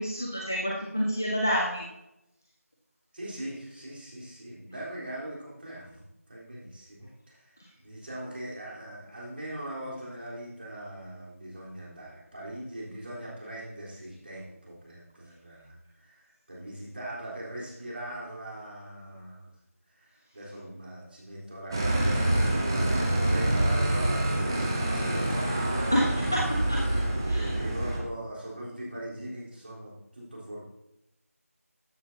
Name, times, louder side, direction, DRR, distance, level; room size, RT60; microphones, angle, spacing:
voice 1, 0.0-1.8 25.9-26.8 27.3-27.6, equal, 10° left, -3 dB, 0.4 m, -28 dB
voice 2, 3.1-6.0 6.3-19.5 19.9-26.2 27.4-30.6, right 1 dB, 40° right, -6 dB, 3.8 m, -41 dB
sound 1, 21.7-28.0, right 1 dB, 15° right, 0.9 m, -26 dB
14.0 x 8.3 x 2.8 m, 0.86 s
figure-of-eight pair, 170°, 8 cm